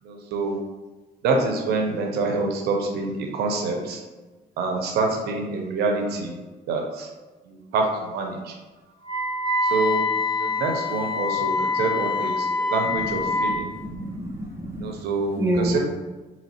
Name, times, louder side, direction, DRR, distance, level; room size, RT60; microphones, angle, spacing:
voice 1, 0.0-0.6 1.2-4.0 4.6-6.4 6.7-7.1 7.4-8.5 9.7-10.1 10.4-13.7 14.8-15.8, right 3 dB, 75° right, 2 dB, 0.7 m, -26 dB
Wind instrument woodwind instrument, 9.0-13.6, left 3 dB, 25° left, 0.6 m, -25 dB
voice 2, 13.1-14.9 15.4-15.8, right 1 dB, 15° right, 0 dB, 0.6 m, -28 dB
4.0 x 2.9 x 2.9 m, 1.2 s
cardioid pair, 110°, 17 cm